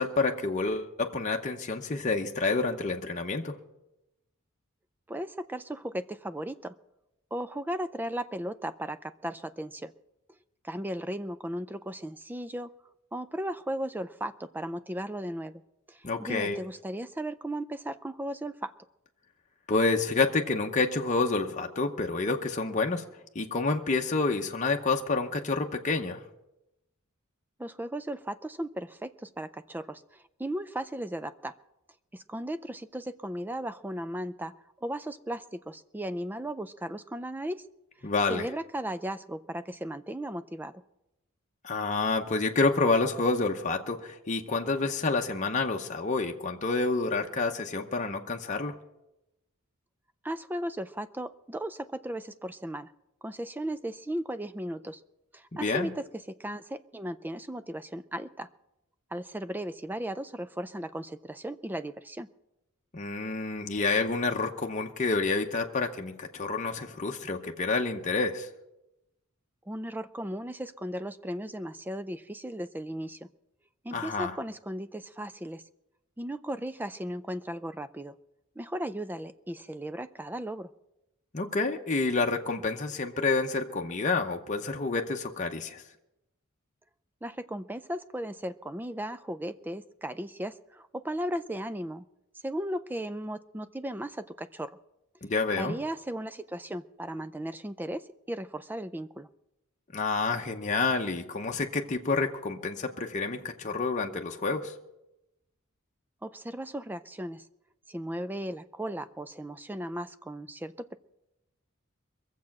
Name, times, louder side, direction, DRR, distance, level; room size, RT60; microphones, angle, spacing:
voice 1, 0.0-3.5 16.0-16.6 19.7-23.0 23.3-26.2 38.0-38.5 41.6-48.7 55.5-55.9 62.9-68.5 73.9-74.3 81.3-85.8 95.2-95.8 99.9-104.7, left 3 dB, 35° left, 3 dB, 0.8 m, -28 dB
voice 2, 5.1-6.7 7.3-9.9 10.6-12.7 13.1-15.6 15.9-18.7 27.6-31.5 32.1-34.5 34.8-37.7 38.3-40.8 50.2-52.9 53.2-55.0 55.3-58.5 59.1-62.3 69.7-73.3 73.8-75.6 76.2-78.1 78.6-80.7 87.2-92.1 92.4-94.8 95.5-99.3 106.2-107.5 107.9-111.0, right 1 dB, 10° right, 13 dB, 0.4 m, -36 dB
22.5 x 7.5 x 5.9 m, 0.92 s
head